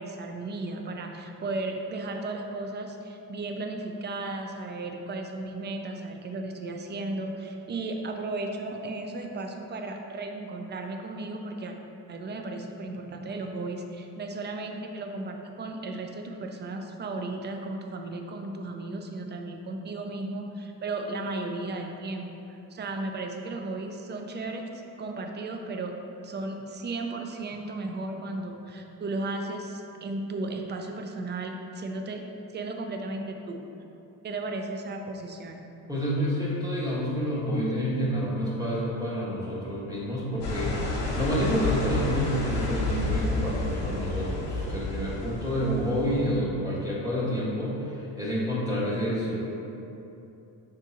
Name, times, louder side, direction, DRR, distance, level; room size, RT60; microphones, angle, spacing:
voice 1, 0.0-11.7 12.1-25.9 26.2-32.2 32.5-33.6 34.2-35.6, right 2 dB, 25° right, 4 dB, 0.4 m, -35 dB
voice 2, 35.9-49.4, equal, 10° right, -7 dB, 1.2 m, -28 dB
sound 1, 40.4-46.4, left 2 dB, 70° left, 1.1 m, -30 dB
5.2 x 3.6 x 2.8 m, 2.9 s
cardioid pair, 90°, 42 cm